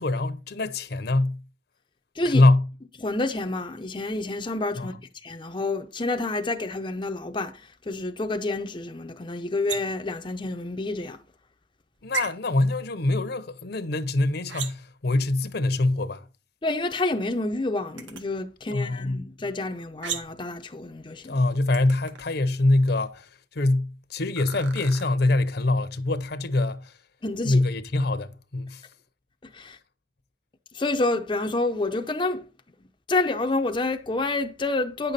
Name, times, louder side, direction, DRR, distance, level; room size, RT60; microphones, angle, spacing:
voice 1, 0.0-1.4 2.2-2.7 4.8-4.9 12.0-16.3 18.7-19.2 21.2-27.0 27.4-28.8, left 2 dB, 55° left, 0.8 m, -24 dB
voice 2, 3.0-4.9 5.2-11.2 16.6-21.4 27.2-27.6 29.4-29.8 30.7-32.4 33.1-35.1, left 2 dB, 25° left, 0.5 m, -28 dB
sound 1, 9.7-10.1 12.1-12.3 14.5-15.0 18.0-18.2 20.0-20.5 21.7-22.2 24.4-25.0, right 6 dB, 75° right, 1.5 m, -34 dB
9.6 x 6.7 x 4.1 m
head